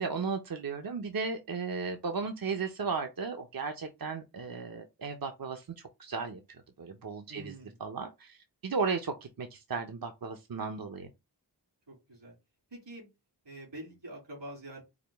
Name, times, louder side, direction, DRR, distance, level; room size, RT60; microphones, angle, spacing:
voice 1, 0.0-5.7 6.0-6.4 6.8-7.5 7.8-11.1, right 5 dB, 55° right, 0.7 m, -35 dB
voice 2, 7.3-7.8 11.9-12.3 12.7-13.1 13.4-14.8, right 1 dB, 80° right, 2.8 m, -46 dB
4.9 x 2.2 x 3.4 m
wide cardioid pair, 40°, 43 cm